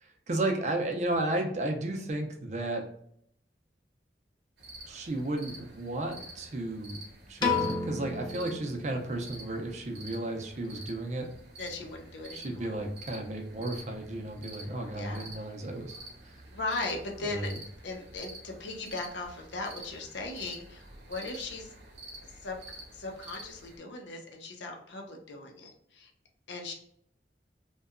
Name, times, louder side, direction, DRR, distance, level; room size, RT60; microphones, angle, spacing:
voice 1, 0.0-2.9 4.9-7.0 7.3-11.3 12.3-16.0 17.2-17.6, right 1 dB, 40° right, 3 dB, 0.4 m, -33 dB
sound 1, 4.6-23.8, right 1 dB, 70° right, 0.7 m, -49 dB
Piano, 7.4-9.7, left 4 dB, 25° left, 0.4 m, -32 dB
voice 2, 11.6-12.7 14.9-15.3 16.5-17.5 17.8-21.7 22.2-22.6 22.9-26.1 26.5-26.7, left 3 dB, 85° left, 1 dB, 0.6 m, -38 dB
2.7 x 2.2 x 2.4 m, 0.68 s
head